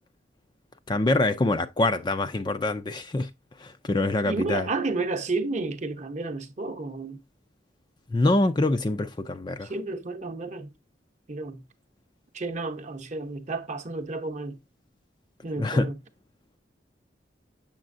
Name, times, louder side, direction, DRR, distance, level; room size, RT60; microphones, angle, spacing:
voice 1, 0.9-3.3 3.6-4.7 8.1-9.7 15.6-15.9, left 2 dB, 25° left, 0.4 m, -25 dB
voice 2, 4.2-7.2 9.6-10.7 11.3-11.6 12.3-14.6 15.4-16.0, right 3 dB, 40° right, 0.8 m, -31 dB
7.4 x 6.8 x 2.5 m
head